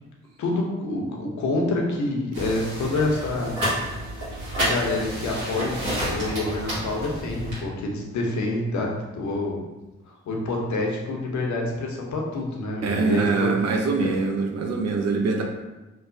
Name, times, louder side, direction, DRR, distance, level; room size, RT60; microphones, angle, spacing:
voice 1, 0.4-3.5 4.6-9.6 10.1-13.5 14.0-14.1, left 2 dB, 60° left, 0 dB, 0.7 m, -27 dB
sound 1, 2.3-7.6, right 1 dB, 80° right, 1.2 m, -30 dB
voice 2, 12.8-15.4, right 4 dB, 55° right, 3 dB, 0.5 m, -23 dB
3.0 x 2.0 x 2.6 m, 1.1 s
hypercardioid pair, 40°, 32 cm